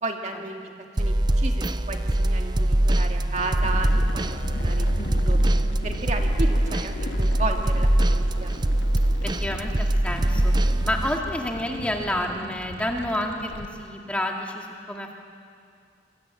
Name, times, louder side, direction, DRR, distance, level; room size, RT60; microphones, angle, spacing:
voice 1, 0.0-0.7 1.0-5.4 5.8-8.6, right 2 dB, 40° right, 3 dB, 2.0 m, -33 dB
sound 1, 1.0-11.2, right 1 dB, 25° right, 0.6 m, -23 dB
sound 2, 3.6-13.7, left 1 dB, 85° left, 1.7 m, -35 dB
Wind instrument woodwind instrument, 4.6-8.6, left 2 dB, 45° left, 5.5 m, -49 dB
voice 2, 9.0-10.6 10.8-15.1, left 1 dB, 5° left, 1 dB, 2.1 m, -29 dB
26.0 x 23.5 x 9.0 m, 2.4 s
head